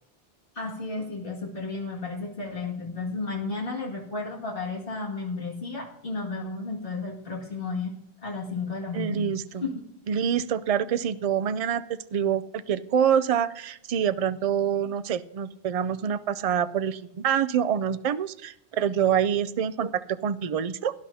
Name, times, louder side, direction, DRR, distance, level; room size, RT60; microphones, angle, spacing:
voice 1, 0.5-7.9 8.2-9.3 9.6-9.7, left 3 dB, 55° left, -3 dB, 2.3 m, -33 dB
voice 2, 8.9-9.6 10.1-20.9, right 8 dB, 55° right, 12 dB, 0.4 m, -26 dB
18.0 x 11.0 x 2.7 m, 0.80 s
omnidirectional pair, 1.1 m